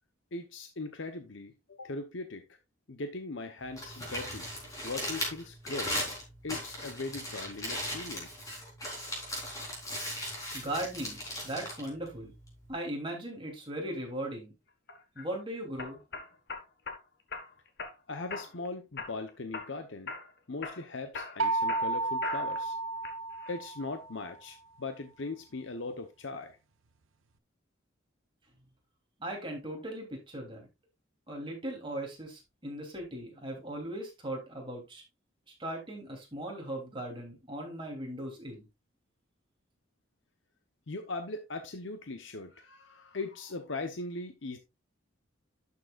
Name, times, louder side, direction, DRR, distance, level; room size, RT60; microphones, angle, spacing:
voice 1, 0.3-2.6 2.9-4.5 4.8-6.0 6.4-8.3 18.1-20.1 20.5-22.8 23.5-26.6 40.9-44.6, left 3 dB, 70° left, 0.9 m, -39 dB
Crumpling crinkling, 3.6-12.7, left 1 dB, 15° left, 3.9 m, -38 dB
voice 2, 10.5-11.2 11.4-12.3 12.7-14.5 15.1-16.0 29.2-30.7 31.3-35.0 35.6-38.7, right 1 dB, 25° right, 3.1 m, -38 dB
sound 1, 14.9-15.3 15.8-17.0 17.3-17.9 18.3-18.7 19.0-19.8 20.1-20.3 20.6-22.6 23.0-23.6, left 4 dB, 55° left, 1.4 m, -40 dB
sound 2, 21.4-24.2, right 3 dB, 90° right, 0.6 m, -32 dB
11.5 x 6.8 x 2.4 m
head